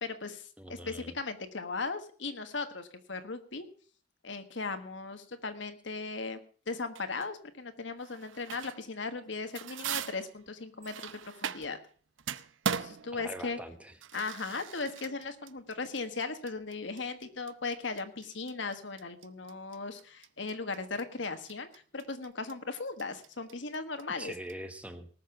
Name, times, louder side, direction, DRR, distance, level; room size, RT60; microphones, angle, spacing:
voice 1, 0.0-3.7 4.2-6.4 6.7-11.8 12.8-13.6 14.1-24.3, left 4 dB, 70° left, 8 dB, 1.5 m, -37 dB
voice 2, 0.6-1.2 13.1-13.9 24.2-25.1, right 1 dB, 5° right, 8 dB, 1.1 m, -43 dB
sound 1, 7.0-7.3 8.0-8.9 9.2-11.9 12.2-24.5, right 7 dB, 85° right, 0.7 m, -40 dB
18.5 x 6.7 x 6.7 m, 0.43 s
head